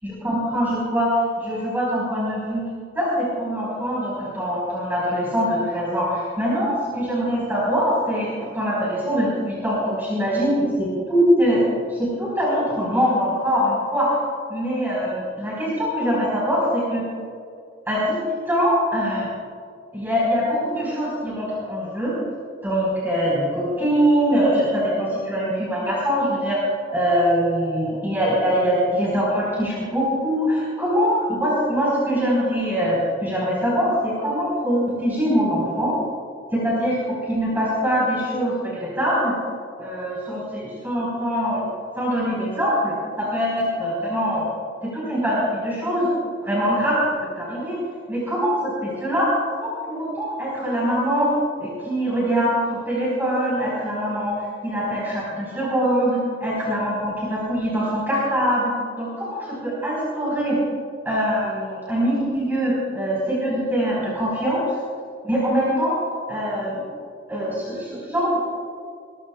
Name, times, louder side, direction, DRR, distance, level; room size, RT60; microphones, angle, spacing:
voice 1, 0.0-1.1 1.4-2.7 2.9-11.6 11.9-14.1 14.5-17.0 17.9-19.3 19.9-22.1 22.6-26.6 26.9-35.9 36.5-39.4 39.8-41.7 41.9-44.5 44.9-46.1 46.4-47.0 47.4-47.8 48.1-49.3 49.6-51.3 51.6-60.6 61.0-64.7 65.2-66.0 66.3-66.8 67.3-68.4, equal, 10° right, -7 dB, 4.8 m, -23 dB
22.0 x 21.0 x 2.4 m, 2.4 s
head